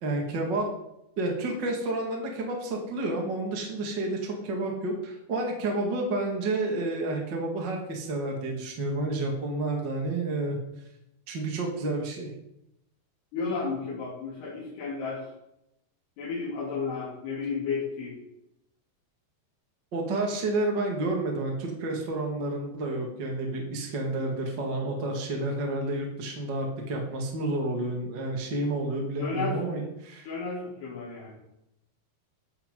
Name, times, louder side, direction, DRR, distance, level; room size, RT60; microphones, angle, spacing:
voice 1, 0.0-0.7 1.2-10.6 11.3-12.3 19.9-30.3, right 2 dB, 45° right, 1 dB, 1.4 m, -30 dB
voice 2, 13.3-15.2 16.2-18.2 25.7-25.9 29.2-29.7 30.2-31.4, left 4 dB, 70° left, -7 dB, 4.6 m, -33 dB
13.5 x 9.4 x 3.8 m, 0.82 s
omnidirectional pair, 4.8 m